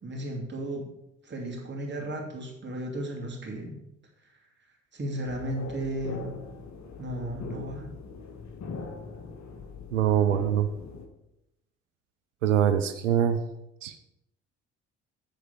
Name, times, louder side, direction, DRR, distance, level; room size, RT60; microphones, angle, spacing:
voice 1, 0.0-0.9 1.2-3.8 4.9-6.4 7.0-7.9, right 1 dB, 30° right, 0 dB, 2.7 m, -34 dB
sound 1, 5.3-11.1, left 4 dB, 50° left, 1.6 m, -41 dB
voice 2, 9.9-10.7 12.4-13.4 13.8-14.0, right 10 dB, 90° right, 9 dB, 0.5 m, -24 dB
9.1 x 4.7 x 6.7 m, 0.85 s
hypercardioid pair, 50°, 36 cm